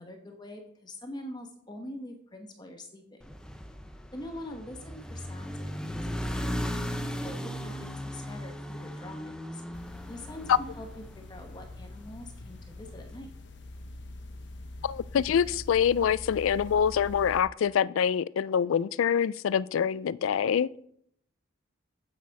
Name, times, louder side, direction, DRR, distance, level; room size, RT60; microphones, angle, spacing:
voice 1, 0.0-3.3 4.1-9.6 10.1-13.3, left 1 dB, 20° left, 1.0 m, -44 dB
sound 1, 3.2-11.6, equal, 5° left, 0.6 m, -36 dB
sound 2, 9.7-17.4, left 2 dB, 55° left, 1.0 m, -44 dB
voice 2, 14.8-20.7, left 8 dB, 80° left, 0.3 m, -25 dB
8.5 x 8.3 x 4.7 m
head